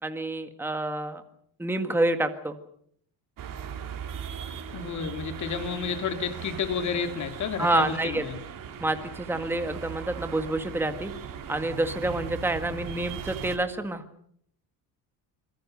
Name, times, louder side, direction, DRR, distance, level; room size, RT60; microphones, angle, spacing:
voice 1, 0.0-1.2 1.6-2.6 7.6-8.2 8.8-11.1 11.5-14.0, right 2 dB, 5° right, 7 dB, 1.8 m, -28 dB
sound 1, 3.4-13.6, right 7 dB, 55° right, 3.7 m, -39 dB
voice 2, 4.7-8.4, left 6 dB, 45° left, 7 dB, 3.0 m, -31 dB
26.5 x 23.0 x 6.7 m, 0.65 s
cardioid pair, 160°, 40 cm